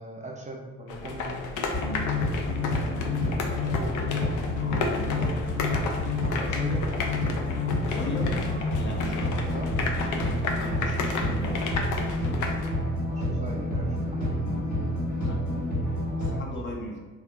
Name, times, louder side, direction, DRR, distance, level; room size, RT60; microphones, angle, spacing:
voice 1, 0.0-1.4 3.8-4.1 5.5-5.6 6.3-6.9 9.5-9.7 13.1-14.9, right 2 dB, 25° right, -1 dB, 0.4 m, -39 dB
sound 1, 0.9-12.7, left 3 dB, 85° left, 0.5 m, -33 dB
sound 2, 1.7-16.4, left 2 dB, 65° left, 1.3 m, -28 dB
voice 2, 1.7-2.2 4.6-5.2 7.8-8.4 8.8-9.5 9.9-11.8 15.2-15.6 16.1-17.0, equal, 40° left, -1 dB, 0.6 m, -38 dB
2.8 x 2.5 x 2.3 m, 1.4 s
cardioid pair, 90°, 30 cm